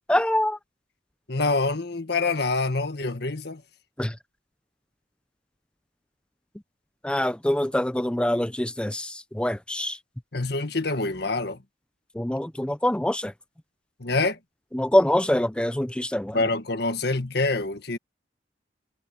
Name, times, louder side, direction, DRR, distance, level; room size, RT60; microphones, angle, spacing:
voice 1, 0.1-0.6 4.0-4.1 7.0-10.0 12.2-13.3 14.7-16.4, left 1 dB, 5° left, 0.6 m, -24 dB
voice 2, 1.3-3.6 10.3-11.6 14.0-14.4 16.3-18.0, left 3 dB, 65° left, 1.7 m, -26 dB
head